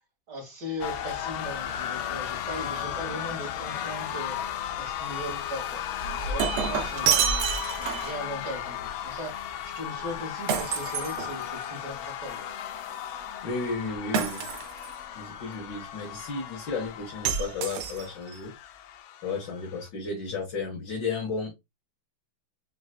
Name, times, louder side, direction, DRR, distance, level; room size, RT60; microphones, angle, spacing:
voice 1, 0.3-4.4 4.8-12.4, equal, 55° right, 2.5 m, -39 dB
sound 1, 0.8-19.9, left 10 dB, 80° left, 1.4 m, -35 dB
Shatter, 6.0-8.2 10.5-11.8 14.1-14.9 17.3-18.4, right 7 dB, 90° right, 1.6 m, -28 dB
voice 2, 13.4-14.4 15.2-18.5 19.2-21.5, left 4 dB, 60° left, 1.7 m, -33 dB
5.2 x 2.9 x 2.3 m
omnidirectional pair, 2.3 m